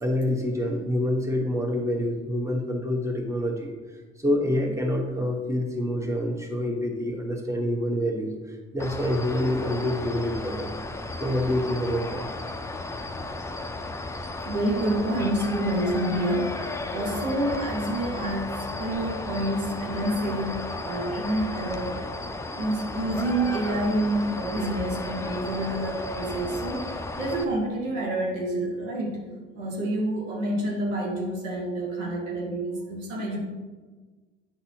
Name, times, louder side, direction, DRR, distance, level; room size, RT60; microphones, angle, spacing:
voice 1, 0.0-3.7 4.2-10.7 11.2-12.2 22.5-22.6, left 1 dB, 10° right, 0 dB, 1.2 m, -27 dB
sound 1, 8.8-27.4, left 2 dB, 10° left, 0.5 m, -34 dB
voice 2, 14.4-22.0 22.5-29.3 29.5-33.4, right 1 dB, 80° right, -2 dB, 1.3 m, -28 dB
8.8 x 4.0 x 2.9 m, 1.3 s
hypercardioid pair, 55°, 38 cm